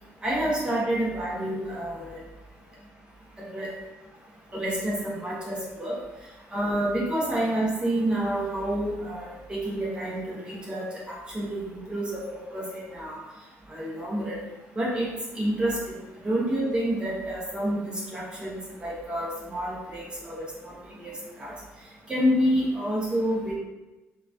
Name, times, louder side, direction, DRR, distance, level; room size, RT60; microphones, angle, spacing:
voice 1, 0.2-2.2 3.4-3.7 4.5-5.9 6.5-13.2 13.7-14.4 14.7-15.1 15.3-16.0 16.2-20.7 21.0-21.5 22.1-23.6, right 1 dB, 15° right, -5 dB, 0.8 m, -28 dB
3.8 x 2.3 x 2.5 m, 1.1 s
cardioid pair, 160°, 5 cm